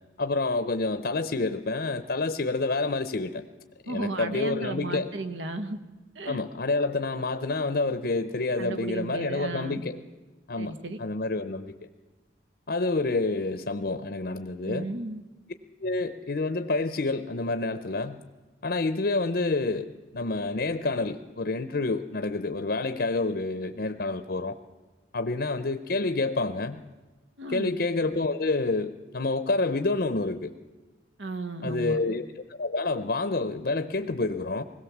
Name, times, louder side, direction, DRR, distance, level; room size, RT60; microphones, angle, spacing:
voice 1, 0.2-3.4 3.8-5.1 6.3-10.0 10.5-11.7 12.7-14.9 15.8-18.2 18.6-24.5 25.1-26.8 27.5-30.5 31.6-34.6, left 3 dB, 55° left, 10 dB, 0.7 m, -28 dB
voice 2, 3.9-5.8 6.1-6.4 8.6-9.8 10.6-11.0 14.6-15.2 27.4-27.7 31.2-32.0, right 2 dB, 80° right, 9 dB, 1.4 m, -34 dB
21.0 x 17.0 x 7.2 m, 1.2 s
head